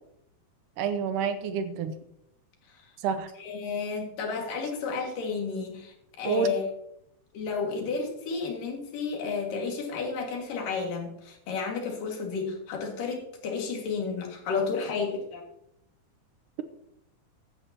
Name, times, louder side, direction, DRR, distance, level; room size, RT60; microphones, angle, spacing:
voice 1, 0.8-1.9 3.0-3.3 6.3-6.6, right 7 dB, 80° right, 10 dB, 2.2 m, -28 dB
voice 2, 3.4-6.6 7.3-15.4, left 5 dB, 75° left, 1 dB, 3.7 m, -32 dB
15.5 x 11.0 x 2.9 m, 0.77 s
omnidirectional pair, 3.9 m